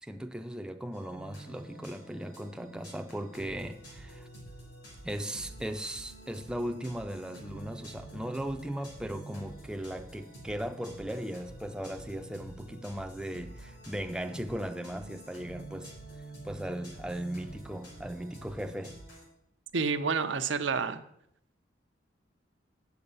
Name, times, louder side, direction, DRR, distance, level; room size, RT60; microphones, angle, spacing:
voice 1, 0.0-4.3 5.0-15.9 16.4-19.0, equal, 5° right, 0.4 m, -37 dB
sound 1, 0.9-19.3, right 2 dB, 90° left, 4.4 m, -48 dB
voice 2, 19.7-21.0, right 5 dB, 85° right, 0.7 m, -29 dB
8.6 x 6.9 x 5.4 m
head